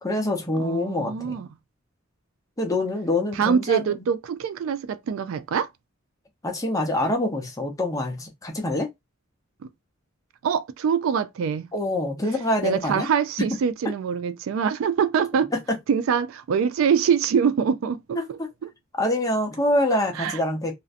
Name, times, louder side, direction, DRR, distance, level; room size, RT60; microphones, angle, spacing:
voice 1, 0.0-1.3 2.6-4.1 6.4-8.9 11.7-13.1 18.2-18.5 19.0-20.7, left 1 dB, 15° left, 0.6 m, -25 dB
voice 2, 0.6-1.5 3.4-5.7 10.4-11.7 12.6-15.5 15.9-18.7 19.9-20.4, right 7 dB, 80° right, 0.3 m, -24 dB
2.5 x 2.1 x 2.4 m
head